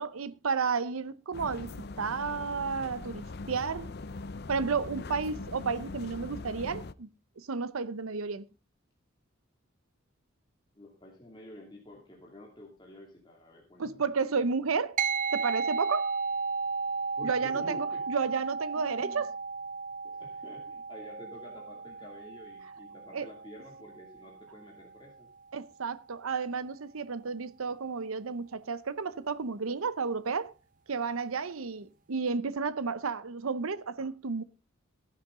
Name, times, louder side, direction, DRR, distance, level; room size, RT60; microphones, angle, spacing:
voice 1, 0.0-3.9 4.5-7.1 7.4-8.5 13.8-15.0 15.3-16.1 17.2-19.3 23.1-23.3 25.5-30.5 30.9-34.4, right 5 dB, 85° right, 0.7 m, -32 dB
sound 1, 1.3-6.9, left 3 dB, 50° left, 0.6 m, -41 dB
voice 2, 10.8-14.0 17.2-18.0 18.8-19.3 20.0-25.3, left 1 dB, 20° left, 2.6 m, -49 dB
sound 2, 15.0-24.7, right 5 dB, 40° right, 0.6 m, -34 dB
15.0 x 11.0 x 3.8 m
head